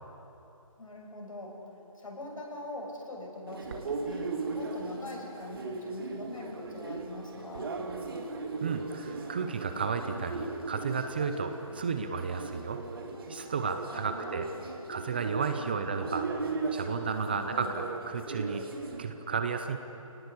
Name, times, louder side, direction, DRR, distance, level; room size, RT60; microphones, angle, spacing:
voice 1, 0.8-7.8 13.9-14.7 15.6-15.9 17.3-17.7, left 2 dB, 70° left, -1 dB, 7.3 m, -43 dB
sound 1, 3.5-19.0, right 3 dB, 40° right, 2.3 m, -38 dB
voice 2, 8.6-12.8 13.3-14.5 14.9-16.3 16.7-18.6 19.0-19.8, right 5 dB, 15° right, 8 dB, 0.6 m, -33 dB
27.0 x 19.0 x 8.4 m, 2.9 s
figure-of-eight pair, 165°, 18 cm